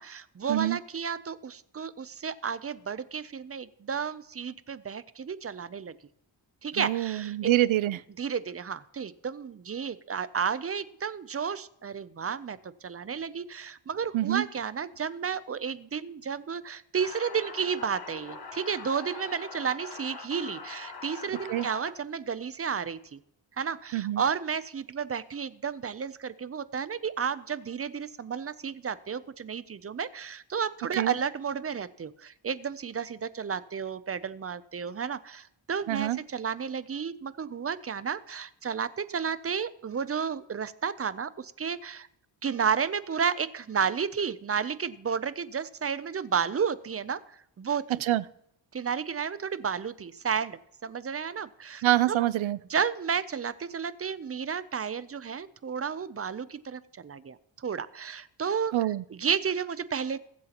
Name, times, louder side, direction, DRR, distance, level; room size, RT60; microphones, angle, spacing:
voice 1, 0.0-5.9 6.6-7.4 8.2-23.2 23.6-42.1 42.4-47.2 47.6-47.9 48.7-52.2 52.7-58.7 59.1-60.2, right 6 dB, 30° right, 16 dB, 0.5 m, -32 dB
voice 2, 6.8-8.0 14.1-14.4 21.5-21.7 23.9-24.2 31.0-31.2 35.9-36.2 48.0-48.2 51.8-52.6 58.7-59.0, right 14 dB, 90° right, 17 dB, 0.6 m, -26 dB
sound 1, 17.0-21.9, left 4 dB, 55° left, 1.4 m, -42 dB
21.5 x 8.0 x 2.9 m, 0.75 s
wide cardioid pair, 135°, 46 cm